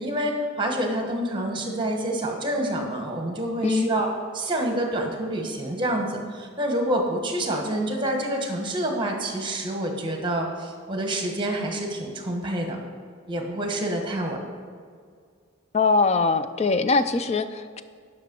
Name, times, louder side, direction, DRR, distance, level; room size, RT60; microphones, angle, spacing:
voice 1, 0.0-4.1 4.3-12.8 13.3-14.4, right 1 dB, 20° right, 2 dB, 1.1 m, -27 dB
voice 2, 15.7-17.8, left 4 dB, 30° left, 11 dB, 0.3 m, -22 dB
10.5 x 6.0 x 5.3 m, 2.1 s
head